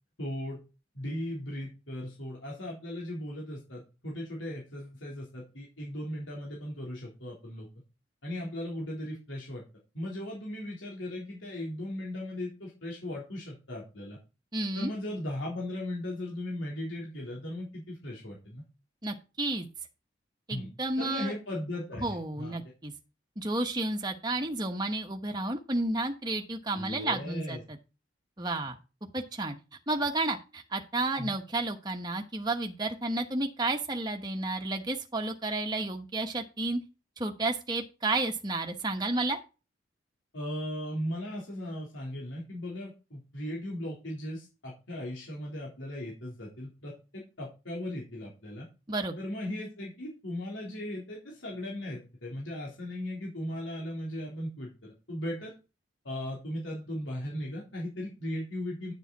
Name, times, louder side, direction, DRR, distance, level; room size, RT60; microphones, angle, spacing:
voice 1, 0.2-0.6 0.9-7.7 8.2-9.6 9.9-14.2 14.7-18.6 20.5-20.7 21.0-22.6 26.7-27.6 31.2-31.4 40.3-48.7 49.2-55.5 56.0-58.9, left 1 dB, 90° left, -3 dB, 3.7 m, -37 dB
voice 2, 14.5-14.9 19.0-19.7 20.5-21.3 22.0-22.9 23.4-27.8 28.4-28.7 29.1-29.5 29.9-36.8 37.2-39.4 48.9-49.2, right 2 dB, 20° right, 3 dB, 1.1 m, -31 dB
10.5 x 7.0 x 4.1 m, 0.29 s
head